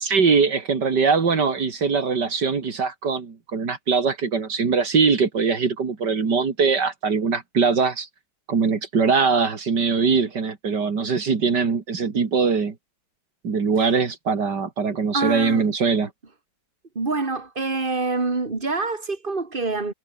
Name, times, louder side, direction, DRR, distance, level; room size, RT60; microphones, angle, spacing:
voice 1, 0.0-8.1 8.5-12.7 13.4-16.1, right 5 dB, 75° right, 3.0 m, -22 dB
voice 2, 15.1-15.7 16.9-19.9, right 3 dB, 30° right, 2.7 m, -26 dB
omnidirectional pair, 1.8 m